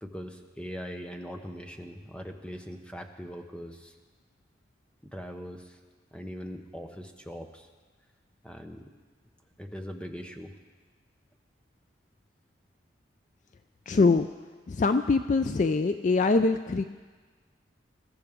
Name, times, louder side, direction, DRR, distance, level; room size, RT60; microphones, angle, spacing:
voice 1, 0.0-4.0 5.0-5.8 6.1-7.7 8.4-8.9 9.6-10.6, equal, 5° left, 4 dB, 0.8 m, -41 dB
voice 2, 13.9-14.3 14.7-16.8, left 3 dB, 40° left, 9 dB, 0.3 m, -23 dB
21.0 x 14.0 x 3.6 m, 1.4 s
head